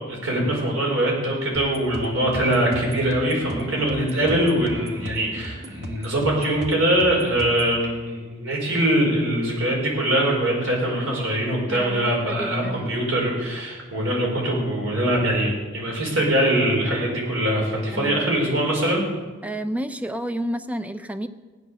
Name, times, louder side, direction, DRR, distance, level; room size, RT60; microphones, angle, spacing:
voice 1, 0.1-19.1, right 1 dB, 80° right, -2 dB, 5.2 m, -22 dB
sound 1, 1.5-7.7, right 1 dB, 55° right, 1.9 m, -38 dB
voice 2, 11.7-12.9 17.9-18.3 19.4-21.3, right 1 dB, 5° right, 10 dB, 0.6 m, -30 dB
16.0 x 9.7 x 6.7 m, 1.3 s
head